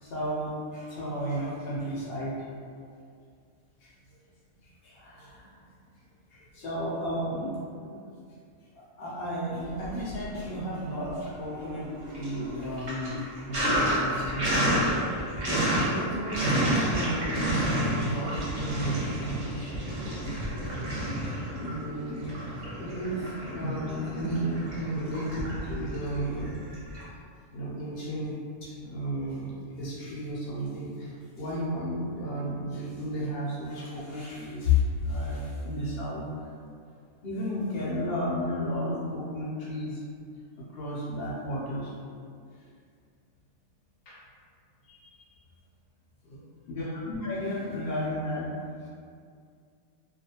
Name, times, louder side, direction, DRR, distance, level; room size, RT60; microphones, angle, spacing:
voice 1, 0.0-2.5 3.8-3.9 4.6-5.7 6.3-7.6 7.8-8.0 8.7-13.2 13.5-14.9 15.5-22.2 22.8-26.5 27.5-36.5 37.2-40.0 40.6-41.9 44.1-44.2 44.9-45.3 46.2-48.5, left 1 dB, 60° left, -6 dB, 0.6 m, -33 dB
Sink (filling or washing), 9.7-10.6 10.9-27.0, right 1 dB, 60° right, 0.9 m, -30 dB
2.4 x 2.3 x 2.7 m, 2.3 s
omnidirectional pair, 1.5 m